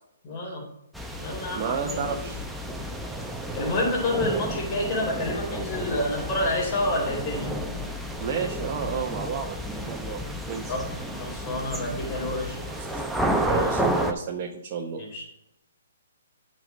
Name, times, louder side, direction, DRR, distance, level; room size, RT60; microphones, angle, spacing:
voice 1, 0.2-0.6 1.2-2.0 3.5-7.5 10.7-10.8 11.1-12.6 15.0-15.3, left 1 dB, 40° left, -2 dB, 3.7 m, -28 dB
sound 1, 0.9-14.1, right 1 dB, ahead, 0.8 m, -31 dB
voice 2, 1.5-2.5 8.2-9.6 9.9-10.7 12.6-13.0 13.3-15.0, right 6 dB, 40° right, 1 dB, 0.9 m, -32 dB
9.0 x 5.5 x 5.2 m, 0.84 s
hypercardioid pair, 140°, 0 cm